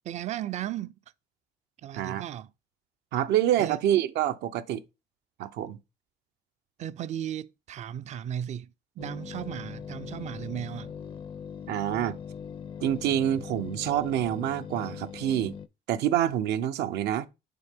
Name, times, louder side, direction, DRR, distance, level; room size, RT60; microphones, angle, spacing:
voice 1, 0.0-1.0 1.8-2.5 3.6-3.8 6.8-8.7 9.0-10.9, right 11 dB, 45° right, 0.4 m, -35 dB
voice 2, 3.1-4.8 5.4-5.8 11.7-12.2 12.8-15.5 15.9-17.3, right 11 dB, 80° right, 0.6 m, -27 dB
sound 1, 9.0-15.7, left 7 dB, 30° left, 0.4 m, -41 dB
6.8 x 4.1 x 3.5 m
cardioid pair, 110°, 17 cm